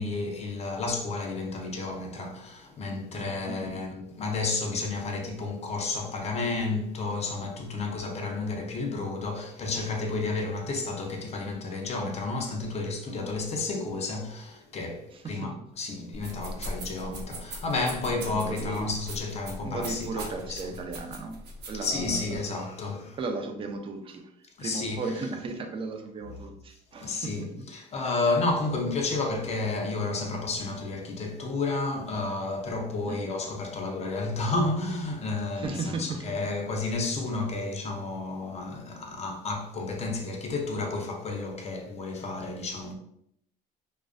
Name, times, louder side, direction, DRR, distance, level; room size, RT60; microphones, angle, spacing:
voice 1, 0.0-20.6 21.8-23.2 24.6-25.0 27.0-42.9, left 3 dB, 40° left, 0.5 m, -31 dB
voice 2, 3.5-3.9 15.1-15.5 18.1-18.9 19.6-21.4 21.7-22.4 23.1-27.6 33.1-33.2 35.5-36.2, right 3 dB, 30° right, 0.4 m, -36 dB
sound 1, 16.1-22.4, right 1 dB, 80° right, 0.6 m, -40 dB
2.4 x 2.1 x 2.4 m
cardioid pair, 110°, 17 cm